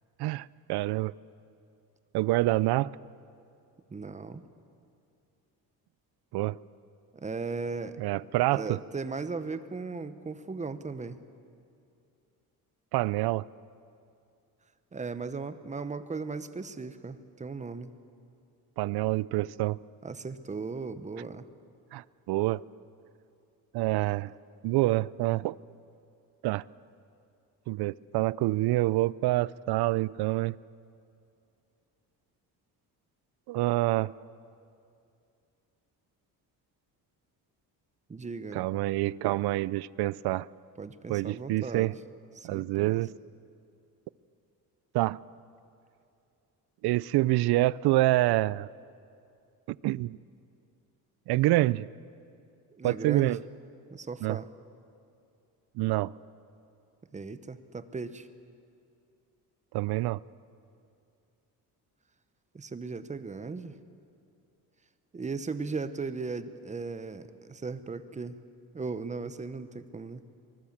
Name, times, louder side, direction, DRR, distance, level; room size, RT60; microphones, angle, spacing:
voice 1, 0.2-1.1 2.1-2.9 6.3-6.6 8.0-8.8 12.9-13.4 18.8-19.8 21.9-22.6 23.7-24.3 24.6-25.6 26.4-26.6 27.7-30.6 33.5-34.1 38.5-40.5 41.1-41.9 42.4-43.1 44.9-45.2 46.8-48.7 49.7-50.2 51.3-51.9 52.8-53.4 54.2-54.4 55.8-56.1 59.7-60.2, right 18 dB, 75° right, 0.5 m, -27 dB
voice 2, 3.9-4.4 7.1-8.0 8.5-11.2 14.9-17.9 20.0-21.4 38.1-38.6 40.8-42.0 42.4-43.0 52.7-53.4 53.9-54.5 57.1-58.3 62.5-63.8 65.1-68.4 68.7-70.2, right 4 dB, 20° right, 0.9 m, -37 dB
24.5 x 19.5 x 7.3 m
cardioid pair, 140°, 39 cm